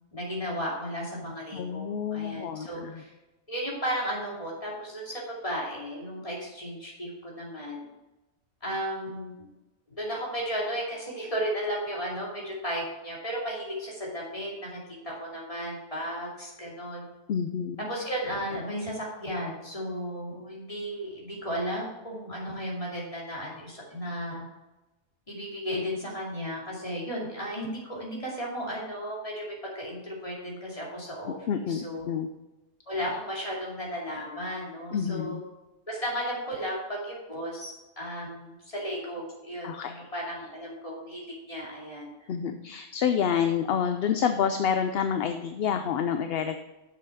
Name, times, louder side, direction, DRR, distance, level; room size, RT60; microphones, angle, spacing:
voice 1, 0.1-3.1 3.5-7.9 8.6-9.5 9.9-17.0 17.9-24.4 25.3-32.0 32.9-35.4 35.9-42.3, equal, 30° left, -4 dB, 2.8 m, -34 dB
voice 2, 1.5-3.0 17.3-17.8 31.5-32.3 34.9-35.4 39.6-39.9 42.3-46.6, left 7 dB, 65° left, 7 dB, 0.7 m, -28 dB
6.9 x 6.9 x 4.9 m, 1.0 s
omnidirectional pair, 1.2 m